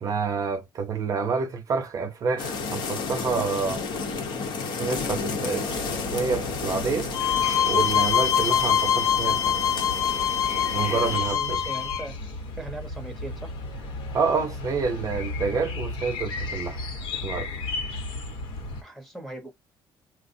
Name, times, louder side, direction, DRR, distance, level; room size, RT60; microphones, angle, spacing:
voice 1, 0.0-3.8 4.6-5.8 6.1-7.1 7.7-9.6 10.7-11.6 14.1-16.8 17.2-17.5, right 5 dB, 40° right, 0.6 m, -28 dB
sound 1, 2.4-11.2, left 4 dB, 60° left, 0.9 m, -32 dB
sound 2, 5.7-18.8, left 2 dB, 80° left, 1.1 m, -35 dB
sound 3, 7.1-12.0, left 9 dB, 40° left, 0.4 m, -24 dB
voice 2, 11.3-12.2 12.6-13.5 17.7-17.8 18.8-19.5, right 2 dB, ahead, 0.8 m, -39 dB
4.6 x 2.1 x 2.6 m
cardioid pair, 130°, 9 cm